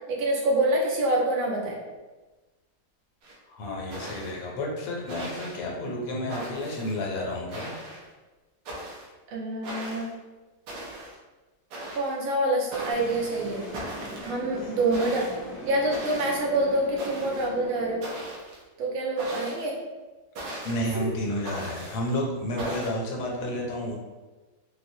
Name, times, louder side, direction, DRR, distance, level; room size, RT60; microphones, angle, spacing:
voice 1, 0.1-1.7 9.3-10.1 11.9-13.7 14.2-15.3 15.6-18.1 18.8-19.7, right 1 dB, 85° right, -3 dB, 1.6 m, -26 dB
sound 1, 3.2-3.3 3.9-4.4 5.1-5.6 6.3-6.9 7.5-8.1 8.7-9.1 9.6-10.1 10.7-11.2 11.7-12.1 12.7-13.2 13.7-14.4 14.9-15.4 15.9-16.4 17.0-17.5 18.0-18.6 19.2-19.7 20.4-20.9 21.4-22.0 22.6-22.9, right 1 dB, 70° right, 1.2 m, -38 dB
voice 2, 3.5-7.7 14.6-14.8 20.6-24.0, left 1 dB, 75° left, -2 dB, 1.5 m, -31 dB
sound 2, 12.9-18.0, left 1 dB, 45° left, 0.7 m, -41 dB
4.5 x 2.0 x 2.6 m, 1.2 s
omnidirectional pair, 2.2 m